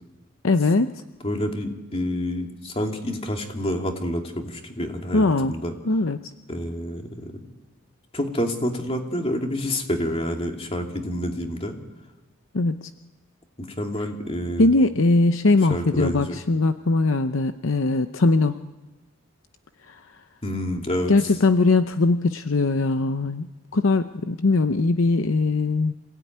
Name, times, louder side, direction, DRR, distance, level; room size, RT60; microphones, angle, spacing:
voice 1, 0.4-0.9 5.1-5.6 5.9-6.2 12.5-12.9 14.6-18.6 19.9-20.0 21.1-23.5 23.7-25.9, left 3 dB, 65° left, 9 dB, 0.7 m, -20 dB
voice 2, 1.2-5.7 6.5-7.4 8.1-11.8 13.6-14.7 15.7-16.4 20.4-21.1, equal, 30° left, 2 dB, 2.7 m, -28 dB
27.0 x 17.0 x 9.4 m, 1.1 s
head